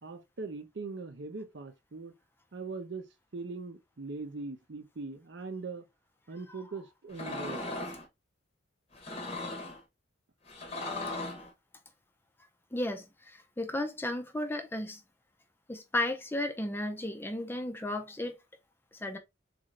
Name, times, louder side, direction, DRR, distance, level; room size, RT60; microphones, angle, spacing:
voice 1, 0.0-2.1 2.5-3.0 3.3-5.8 6.3-7.6 9.3-9.4, right 3 dB, 65° right, 0.6 m, -41 dB
sound 1, 7.1-8.0 8.9-9.8 10.5-11.5, left 2 dB, 30° left, 0.8 m, -38 dB
voice 2, 12.7-15.0 15.7-18.4 18.9-19.2, left 1 dB, 10° left, 0.4 m, -34 dB
3.7 x 2.5 x 3.2 m
head